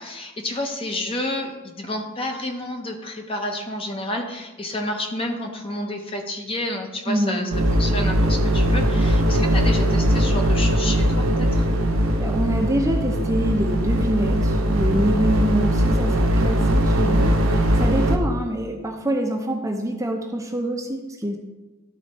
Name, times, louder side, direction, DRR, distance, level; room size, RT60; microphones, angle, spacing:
voice 1, 0.0-11.7, left 1 dB, 25° left, 3 dB, 0.8 m, -30 dB
voice 2, 7.1-7.6 12.2-21.4, right 1 dB, 15° right, 2 dB, 0.7 m, -25 dB
sound 1, 7.5-18.2, equal, 75° right, 0.9 m, -20 dB
12.0 x 4.1 x 4.1 m, 1.1 s
head